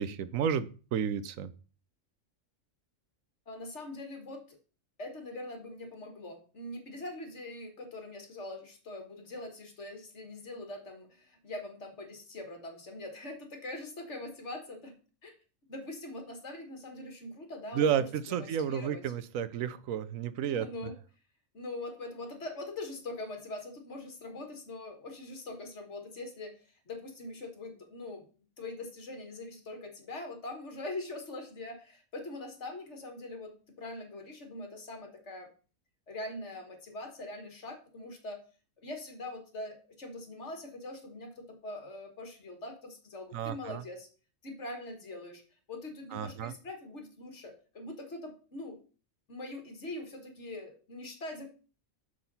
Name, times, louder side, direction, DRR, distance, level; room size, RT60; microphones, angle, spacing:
voice 1, 0.0-1.5 17.7-20.7 43.3-43.8 46.1-46.5, right 8 dB, 90° right, 15 dB, 1.1 m, -31 dB
voice 2, 3.5-4.6 5.0-14.9 15.2-15.3 15.7-19.0 20.5-20.9 21.5-26.5 26.9-28.2 28.6-33.5 33.8-35.5 36.1-38.4 38.8-44.1 44.4-45.4 45.7-48.8 49.3-51.5, left 2 dB, 60° left, 4 dB, 2.1 m, -42 dB
6.5 x 6.0 x 5.4 m, 0.37 s
omnidirectional pair, 1.4 m